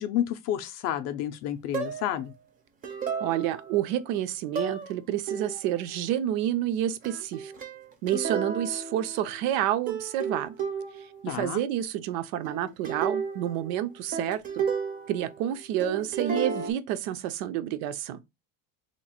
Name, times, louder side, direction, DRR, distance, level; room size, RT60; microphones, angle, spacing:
voice 1, 0.0-2.3 11.3-11.6, left 11 dB, 40° left, 0.4 m, -30 dB
sound 1, 1.7-2.2 2.8-3.8 4.6-4.9 5.3-5.8 7.0-9.6 9.9-11.3 12.4-15.5 15.8-16.7, right 5 dB, 20° right, 0.4 m, -33 dB
voice 2, 3.2-7.5 8.0-10.5 11.0-14.6 15.1-18.2, right 11 dB, 80° right, 0.6 m, -29 dB
3.0 x 2.4 x 4.2 m
cardioid pair, 160°, 41 cm